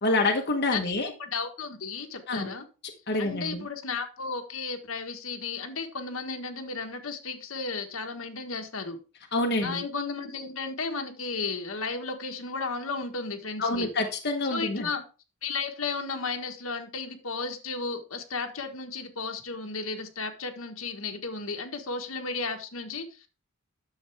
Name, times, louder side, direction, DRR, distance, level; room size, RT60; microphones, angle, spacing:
voice 1, 0.0-1.1 2.3-2.5 3.1-3.6 9.3-9.8 13.6-14.9, left 2 dB, 50° left, 2 dB, 1.2 m, -27 dB
voice 2, 1.2-2.6 3.2-9.0 9.6-13.9 14.5-15.1 15.4-23.3, left 4 dB, 75° left, 5 dB, 1.5 m, -34 dB
10.0 x 7.1 x 3.5 m, 0.32 s
head